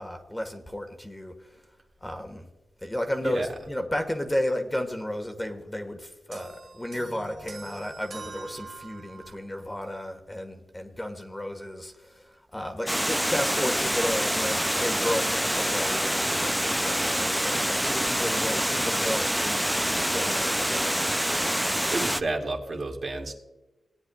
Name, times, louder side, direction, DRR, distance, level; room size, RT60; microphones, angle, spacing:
voice 1, 0.0-1.6 2.0-2.5 2.8-21.3, left 1 dB, 15° left, 5 dB, 1.4 m, -33 dB
sound 1, 6.3-9.5, right 4 dB, 70° right, 1.8 m, -44 dB
Water, 12.9-22.2, equal, 5° right, 0.4 m, -26 dB
voice 2, 21.6-23.3, right 2 dB, 55° right, 0 dB, 2.2 m, -31 dB
18.5 x 9.5 x 2.3 m, 1.1 s
wide cardioid pair, 85°, 0 cm